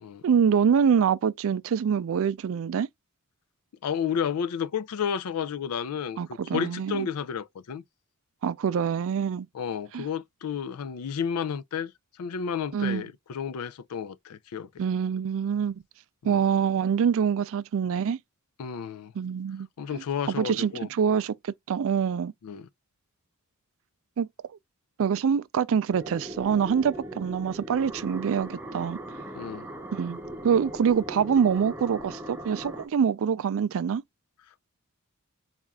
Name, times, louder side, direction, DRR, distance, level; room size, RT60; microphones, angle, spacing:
voice 1, 0.2-2.9 6.2-7.1 8.4-9.5 9.9-10.1 12.7-13.0 14.8-15.8 16.2-18.2 19.2-19.7 19.9-22.3 24.2-24.3 25.0-29.0 29.9-34.0, right 7 dB, 60° right, 0.3 m, -25 dB
voice 2, 3.8-6.2 6.5-7.8 9.5-11.9 12.2-14.7 16.3-16.4 18.6-19.1 19.8-20.9 22.4-22.7 29.3-29.7, left 7 dB, 85° left, 0.4 m, -31 dB
sound 1, 25.9-32.9, right 1 dB, 10° right, 0.6 m, -39 dB
4.3 x 2.4 x 3.5 m
head